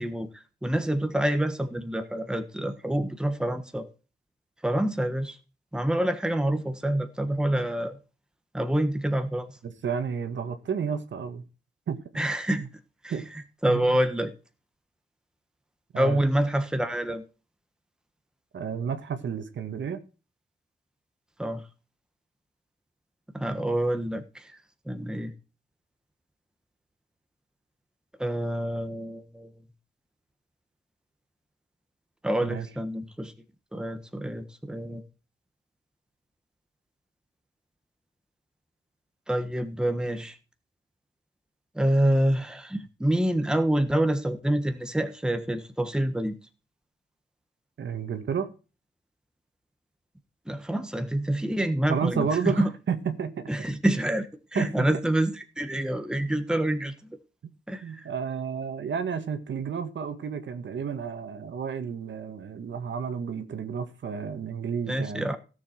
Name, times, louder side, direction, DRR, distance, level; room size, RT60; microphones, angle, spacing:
voice 1, 0.0-3.9 4.6-5.4 5.7-8.0 8.5-9.5 12.1-12.6 13.0-13.1 13.6-14.3 15.9-17.2 21.4-21.6 23.3-24.6 24.9-25.3 28.2-29.5 32.2-33.3 33.7-35.0 39.3-40.4 41.7-46.3 50.5-52.7 53.5-56.9 57.7-58.1 64.9-65.4, right 1 dB, 5° right, 1.3 m, -27 dB
voice 2, 9.6-11.4 11.9-12.0 13.1-13.3 13.7-13.8 15.9-16.2 18.5-20.0 32.4-32.7 47.8-48.5 51.9-53.5 54.6-54.9 57.8-65.3, right 6 dB, 70° right, 1.7 m, -31 dB
16.5 x 7.3 x 4.4 m
wide cardioid pair, 160°, 20 cm